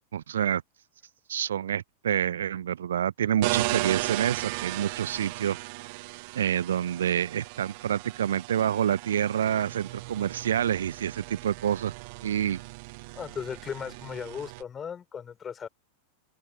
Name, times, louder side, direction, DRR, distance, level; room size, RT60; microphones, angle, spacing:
voice 1, 0.1-0.6 1.3-5.6 6.3-11.9 12.2-12.6, right 9 dB, 65° right, 0.8 m, -27 dB
sound 1, 3.4-14.6, right 28 dB, 45° right, 1.5 m, -36 dB
voice 2, 13.1-15.7, left 7 dB, 20° left, 4.6 m, -37 dB
open air
figure-of-eight pair, 90°, 0 cm